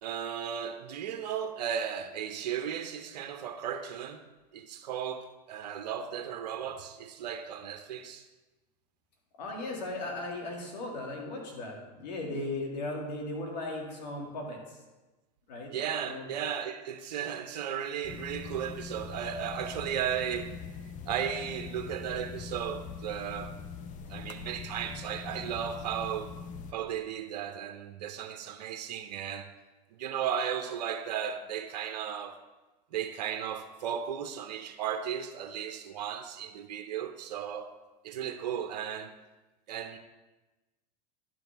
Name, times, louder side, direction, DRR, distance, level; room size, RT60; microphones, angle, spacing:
voice 1, 0.0-4.2 4.5-8.3 15.7-20.6 21.1-23.6 24.1-26.3 26.7-29.5 29.9-32.4 32.9-37.7 38.0-39.1 39.7-40.0, right 8 dB, 85° right, 0.6 m, -35 dB
voice 2, 9.4-14.8 15.5-15.8 16.1-16.3, left 2 dB, 80° left, 2.0 m, -37 dB
sound 1, 18.0-26.7, left 5 dB, 35° left, 0.5 m, -42 dB
11.0 x 6.3 x 3.4 m
hypercardioid pair, 105°, 21 cm